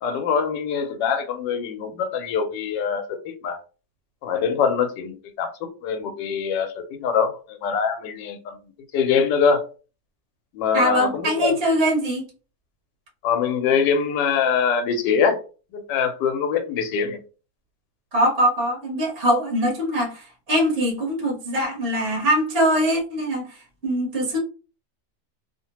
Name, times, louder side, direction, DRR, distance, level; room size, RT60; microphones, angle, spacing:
voice 1, 0.0-3.6 4.2-8.6 8.9-9.7 10.5-11.5 13.2-15.4 15.7-17.2, left 6 dB, 85° left, 1.2 m, -23 dB
voice 2, 10.7-12.2 18.1-24.4, equal, 40° right, 1.0 m, -22 dB
2.9 x 2.1 x 2.8 m
omnidirectional pair, 1.9 m